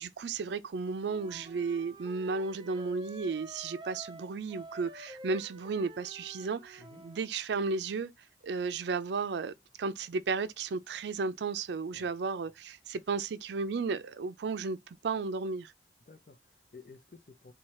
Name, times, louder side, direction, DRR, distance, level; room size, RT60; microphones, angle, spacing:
voice 1, 0.0-8.1 8.4-15.7, right 4 dB, 80° right, 0.4 m, -34 dB
Wind instrument woodwind instrument, 1.0-7.3, right 1 dB, 25° right, 0.5 m, -49 dB
voice 2, 11.9-12.2 12.4-12.6 16.1-17.5, left 3 dB, 50° left, 0.6 m, -54 dB
4.2 x 2.3 x 4.7 m
head